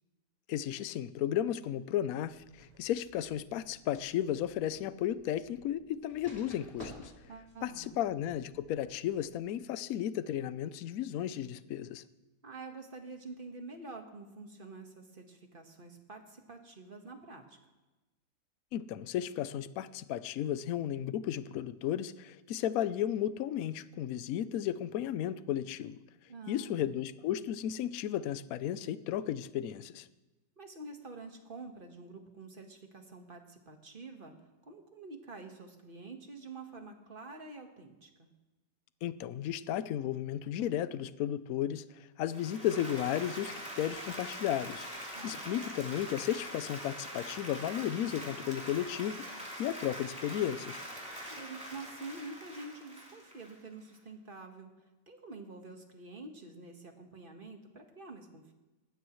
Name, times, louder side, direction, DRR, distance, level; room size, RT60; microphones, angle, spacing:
voice 1, 0.5-7.1 7.6-12.0 18.7-26.0 26.5-30.1 39.0-50.8, left 11 dB, 65° left, 15 dB, 1.0 m, -34 dB
sound 1, 2.2-9.4, left 1 dB, 30° left, 3.3 m, -55 dB
voice 2, 7.3-8.0 12.4-17.6 26.3-26.9 30.6-34.3 34.7-38.3 45.1-45.5 51.3-54.7 55.1-58.5, right 3 dB, 30° right, 4 dB, 1.6 m, -47 dB
Applause, 42.2-53.9, equal, 5° right, 3.4 m, -44 dB
19.5 x 16.0 x 3.1 m, 1.1 s
omnidirectional pair, 1.8 m